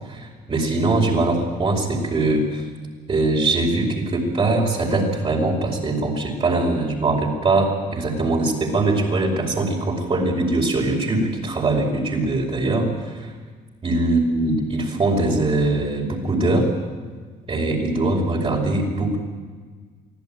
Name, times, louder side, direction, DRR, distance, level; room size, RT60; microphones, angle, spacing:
voice 1, 0.1-2.6 3.1-13.3 13.8-16.7 17.5-19.2, right 2 dB, 35° right, -2 dB, 5.2 m, -22 dB
24.5 x 15.5 x 9.1 m, 1.5 s
cardioid pair, 110°, 17 cm